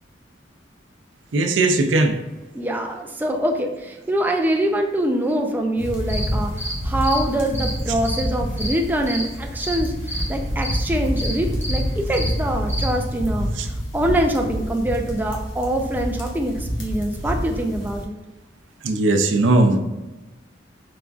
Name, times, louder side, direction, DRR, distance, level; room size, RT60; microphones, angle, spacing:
voice 1, 1.3-2.2 18.8-19.8, right 2 dB, 75° right, 6 dB, 0.5 m, -18 dB
voice 2, 2.5-18.2, right 1 dB, 10° right, 2 dB, 0.3 m, -24 dB
sound 1, 5.8-18.0, equal, 80° left, 1.0 m, -27 dB
sound 2, 5.8-12.9, right 1 dB, 10° left, 1.0 m, -32 dB
4.9 x 3.5 x 2.3 m, 1.1 s
head